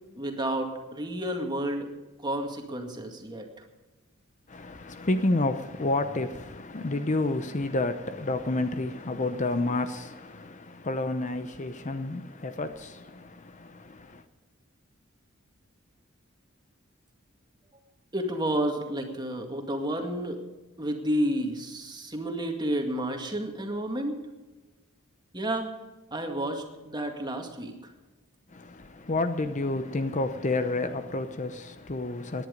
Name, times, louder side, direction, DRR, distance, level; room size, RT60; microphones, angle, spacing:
voice 1, 0.2-1.9 2.2-3.5 18.1-20.4 20.8-24.1 25.3-25.7 26.1-27.7, right 1 dB, 20° right, 2.1 m, -31 dB
voice 2, 4.5-14.2 28.5-32.5, left 2 dB, 35° left, 0.8 m, -30 dB
18.0 x 10.5 x 5.2 m
head